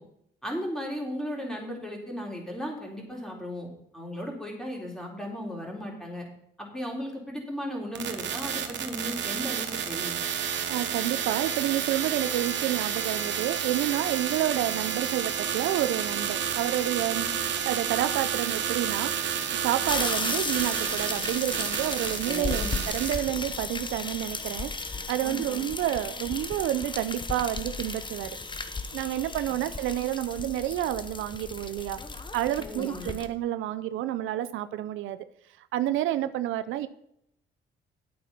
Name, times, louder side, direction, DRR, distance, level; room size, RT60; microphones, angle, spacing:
voice 1, 0.4-3.7 3.9-6.2 6.6-10.2 17.1-17.4 22.2-22.8 25.2-25.6 32.6-33.1, equal, 5° left, -1 dB, 3.8 m, -36 dB
sound 1, 7.9-23.2, right 8 dB, 65° right, 1.3 m, -30 dB
voice 2, 10.7-17.3 17.6-19.1 19.6-24.7 25.1-28.4 28.9-32.0 32.3-35.2 35.7-36.9, right 13 dB, 90° right, 13 dB, 0.6 m, -29 dB
sound 2, 19.9-33.3, left 3 dB, 25° left, 1.0 m, -35 dB
9.8 x 8.4 x 5.5 m, 0.75 s
cardioid pair, 90°, 20 cm